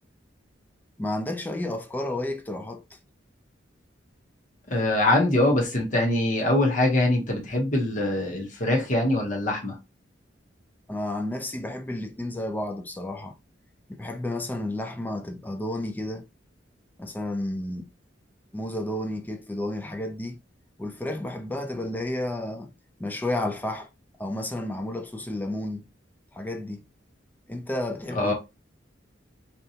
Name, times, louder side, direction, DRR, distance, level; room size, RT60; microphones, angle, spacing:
voice 1, 1.0-2.8 10.9-13.3 13.9-16.3 17.0-17.9 18.5-20.4 20.8-22.7 23.0-23.9 24.2-25.9 26.3-26.9 27.5-28.3, left 1 dB, 10° left, 0.3 m, -31 dB
voice 2, 4.7-9.8 28.1-28.3, left 1 dB, 45° left, 0.8 m, -23 dB
2.7 x 2.2 x 2.6 m
head